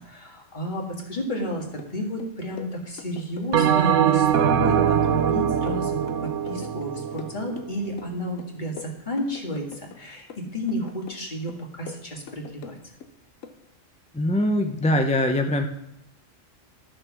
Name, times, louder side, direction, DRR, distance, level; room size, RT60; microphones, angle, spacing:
voice 1, 0.0-10.3 10.5-12.8, equal, 35° left, 0 dB, 1.9 m, -32 dB
sound 1, 1.4-1.9 2.2-3.8 4.1-6.9 7.2-8.1 8.4-10.0 10.3-11.2 11.5-13.1 13.4-13.6, left 7 dB, 85° left, 1.2 m, -43 dB
Bell, 3.5-8.1, right 8 dB, 75° right, 1.0 m, -23 dB
voice 2, 14.1-15.7, left 1 dB, 10° left, 5 dB, 0.4 m, -22 dB
11.5 x 6.4 x 6.0 m, 0.82 s
omnidirectional pair, 1.3 m